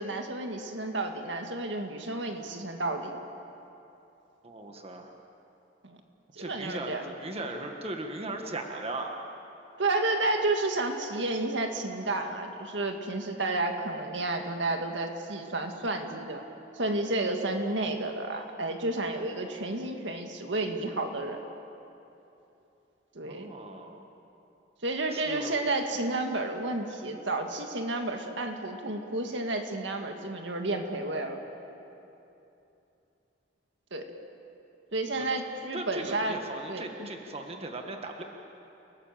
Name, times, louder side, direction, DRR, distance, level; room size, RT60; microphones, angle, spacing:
voice 1, 0.0-3.1 5.8-6.0 6.4-7.0 9.8-16.4 16.7-21.4 23.2-23.5 24.8-31.4 33.9-34.1 34.9-36.4 36.7-36.9, right 2 dB, 70° right, 4 dB, 2.0 m, -31 dB
voice 2, 4.4-5.1 6.4-9.1 23.2-24.0 25.1-25.6 35.2-35.3 35.7-38.2, right 2 dB, 35° right, 3 dB, 1.5 m, -38 dB
29.5 x 18.5 x 7.5 m, 2.8 s
head